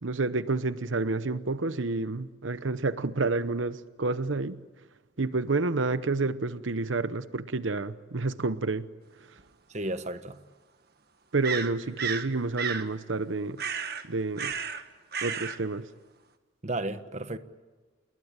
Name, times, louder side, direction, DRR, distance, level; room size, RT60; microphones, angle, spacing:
voice 1, 0.0-4.6 5.2-8.9 11.3-13.6 14.0-14.5 15.2-15.9, right 3 dB, 85° right, 0.9 m, -29 dB
sound 1, 9.4-9.5 11.4-12.3 12.6-12.9 13.6-14.0 14.4-14.8 15.1-15.6, right 6 dB, 55° right, 1.6 m, -32 dB
voice 2, 9.7-10.4 16.6-17.4, right 2 dB, 35° right, 1.3 m, -33 dB
28.5 x 22.0 x 8.9 m
head